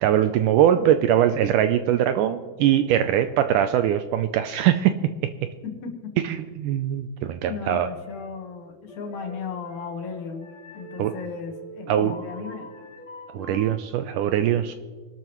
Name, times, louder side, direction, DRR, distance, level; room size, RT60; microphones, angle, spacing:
voice 1, 0.0-4.9 6.2-7.9 11.0-11.1 11.9-12.2 13.3-14.7, right 11 dB, 80° right, 9 dB, 1.9 m, -22 dB
voice 2, 7.5-10.5 10.7-12.7 13.5-13.6, left 5 dB, 60° left, 2 dB, 2.6 m, -35 dB
sound 1, 8.0-8.4 8.9-13.8, left 1 dB, 35° left, 3.5 m, -43 dB
25.5 x 12.5 x 3.1 m, 1.5 s
omnidirectional pair, 4.1 m